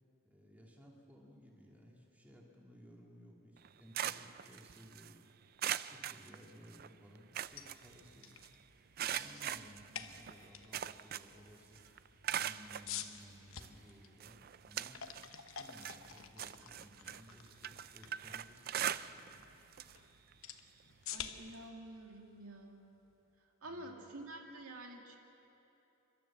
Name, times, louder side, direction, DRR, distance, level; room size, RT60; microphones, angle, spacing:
voice 1, 0.2-5.2 5.7-8.3 9.1-11.8 12.3-15.0 15.5-19.5 23.7-23.9, equal, 5° right, -2 dB, 2.4 m, -58 dB
sound 1, 3.6-5.1 5.6-6.9 7.2-8.5 9.0-11.5 11.8-12.9 13.6-13.7 14.2-15.3 15.6-19.4 19.7-20.0 20.3-20.4 21.6-21.7, right 10 dB, 45° right, 0.3 m, -41 dB
sound 2, 7.4-23.3, left 8 dB, 70° left, 0.9 m, -51 dB
voice 2, 21.1-22.9 23.6-25.2, right 1 dB, 90° right, 1 dB, 2.2 m, -49 dB
29.0 x 12.5 x 7.3 m, 3.0 s
head